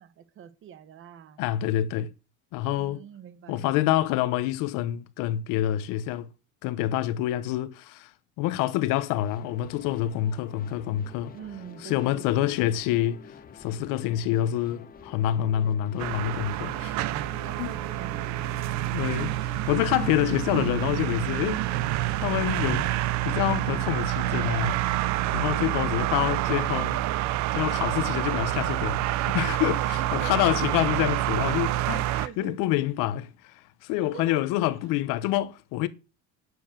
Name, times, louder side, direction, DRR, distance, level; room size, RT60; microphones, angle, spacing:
voice 1, 0.0-1.4 2.8-3.9 11.3-12.6 17.2-18.6 25.6-27.5 29.8-30.4 32.2-32.7 34.0-34.4, right 9 dB, 40° right, 1.4 m, -44 dB
voice 2, 1.4-2.1 2.5-3.0 3.5-6.3 6.6-8.1 8.4-11.3 11.8-13.3 13.6-17.0 17.6-17.7 18.9-19.4 19.7-21.6 22.1-22.9 23.2-24.8 25.3-27.0 27.5-35.9, left 13 dB, 75° left, 1.1 m, -27 dB
sound 1, 9.1-25.3, left 6 dB, 25° left, 1.3 m, -48 dB
sound 2, 16.0-32.3, right 15 dB, 60° right, 0.7 m, -27 dB
9.7 x 7.8 x 6.7 m
cardioid pair, 155°, 32 cm